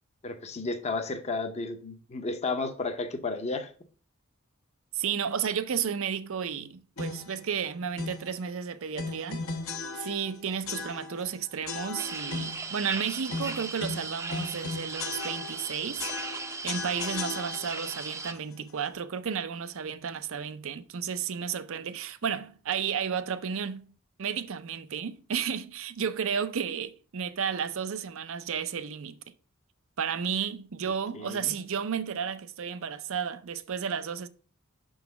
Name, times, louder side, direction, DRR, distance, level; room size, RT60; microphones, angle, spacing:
voice 1, 0.2-3.7 31.1-31.5, left 3 dB, 30° left, 0.7 m, -33 dB
voice 2, 4.9-9.4 9.9-16.1 16.6-23.9 24.2-29.2 30.0-34.3, right 7 dB, 65° right, 0.5 m, -32 dB
sound 1, 7.0-7.4 8.0-8.3 9.0-10.3 10.7-11.3 11.7-12.7 13.3-15.7 16.0-17.9, left 3 dB, 75° left, 1.0 m, -37 dB
sound 2, 12.0-18.3, right 4 dB, 15° right, 0.5 m, -37 dB
6.1 x 3.9 x 5.8 m
head